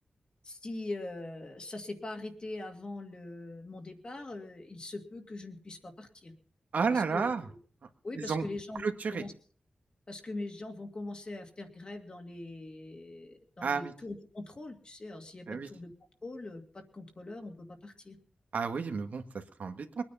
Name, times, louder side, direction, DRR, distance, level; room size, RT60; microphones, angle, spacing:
voice 1, 0.4-6.3 6.9-7.6 8.0-9.3 10.1-15.9 16.2-16.6 16.9-18.2, left 2 dB, 35° left, 3 dB, 2.2 m, -42 dB
voice 2, 6.7-7.4 8.2-8.5 8.8-9.2 13.6-13.9 15.5-15.7 18.5-20.0, right 5 dB, 65° right, 7 dB, 1.7 m, -31 dB
22.5 x 9.8 x 5.6 m, 0.43 s
wide cardioid pair, 160°, 3 cm